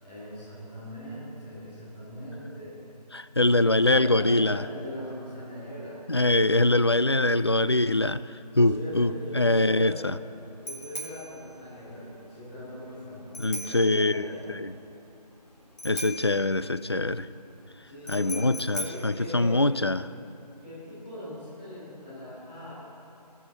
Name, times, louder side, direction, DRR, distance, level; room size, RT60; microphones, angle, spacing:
voice 1, 0.0-2.7 3.8-6.0 8.5-10.0 10.6-14.4 17.8-19.6 20.6-22.7, left 1 dB, 5° left, -12 dB, 4.4 m, -40 dB
voice 2, 3.1-4.6 6.1-8.2 8.6-10.2 13.4-14.8 15.8-17.3 18.1-20.1, left 2 dB, 40° left, 15 dB, 0.4 m, -23 dB
Bicycle bell, 9.0-20.1, equal, 75° left, 3.2 m, -42 dB
22.0 x 8.4 x 7.9 m, 2.8 s
figure-of-eight pair, 175°, 21 cm